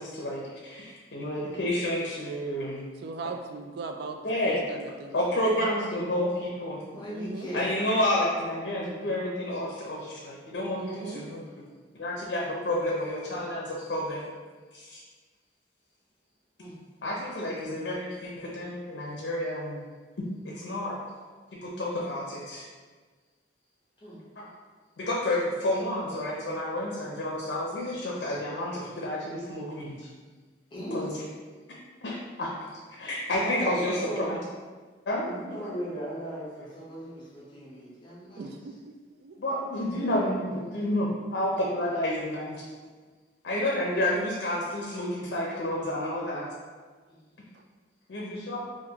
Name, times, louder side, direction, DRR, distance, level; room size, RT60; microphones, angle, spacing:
voice 1, 0.0-2.8 4.2-4.6 5.1-6.8 7.5-11.4 11.9-14.2 14.7-15.0 17.0-19.8 20.4-21.0 21.5-22.6 24.4-24.5 25.0-30.1 30.9-31.1 32.0-34.4 35.1-35.3 39.4-42.6 43.4-46.5 48.1-48.6, left 1 dB, 80° left, -3 dB, 0.5 m, -30 dB
voice 2, 3.0-4.2 4.5-5.2 7.1-7.5 10.8-11.2 38.4-39.4, right 4 dB, 65° right, 5 dB, 0.3 m, -39 dB
voice 3, 6.9-7.7 16.6-16.7 24.0-24.2 30.7-31.0 33.4-34.3 35.3-38.5 47.1-47.2, equal, 25° left, -7 dB, 0.9 m, -37 dB
3.7 x 2.5 x 2.9 m, 1.4 s
head